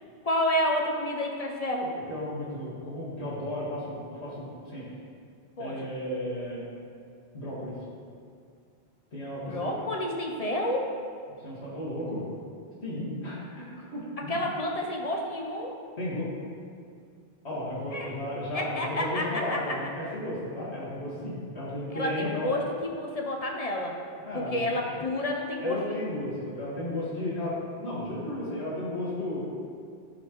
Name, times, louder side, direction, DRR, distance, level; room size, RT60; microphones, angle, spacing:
voice 1, 0.2-1.9 5.6-5.9 9.5-11.0 14.3-15.8 17.9-18.1 18.5-19.6 21.9-24.0 24.3-26.1, left 1 dB, 40° left, 0 dB, 0.7 m, -30 dB
voice 2, 2.1-4.9 5.6-6.6 7.3-7.8 9.1-9.9 11.4-12.2 12.8-14.4 16.0-16.3 17.4-22.5 24.2-24.8 25.6-29.4, left 1 dB, 80° left, -7 dB, 2.1 m, -34 dB
12.0 x 4.2 x 3.0 m, 2.3 s
omnidirectional pair, 1.1 m